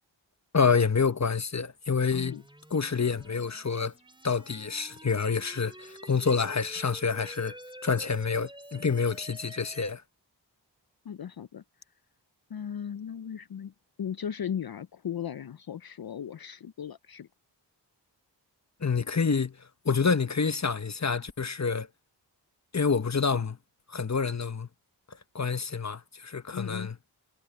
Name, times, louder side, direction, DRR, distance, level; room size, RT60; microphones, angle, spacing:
voice 1, 0.5-2.4 2.7-3.9 4.2-7.5 7.8-10.0 18.8-19.6 19.8-21.9 22.7-23.6 23.9-24.7 25.3-27.0, left 5 dB, 40° left, 1.1 m, -27 dB
sound 1, 1.9-9.9, right 1 dB, 10° right, 3.8 m, -49 dB
voice 2, 2.1-2.4 11.0-11.6 12.5-13.7 14.0-17.3 26.5-26.9, left 8 dB, 55° left, 0.6 m, -37 dB
cardioid pair, 50°, 43 cm